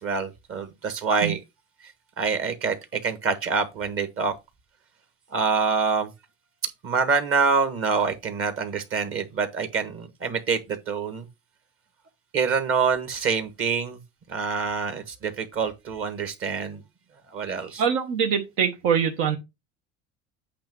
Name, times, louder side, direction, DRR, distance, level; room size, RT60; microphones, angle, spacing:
voice 1, 0.0-1.4 2.2-4.4 5.3-6.1 6.8-11.3 12.3-14.0 14.3-16.8 17.3-17.8, right 5 dB, 45° right, 1.4 m, -26 dB
voice 2, 17.8-19.4, right 7 dB, 80° right, 1.4 m, -23 dB
8.6 x 2.9 x 6.0 m
cardioid pair, 130°, 32 cm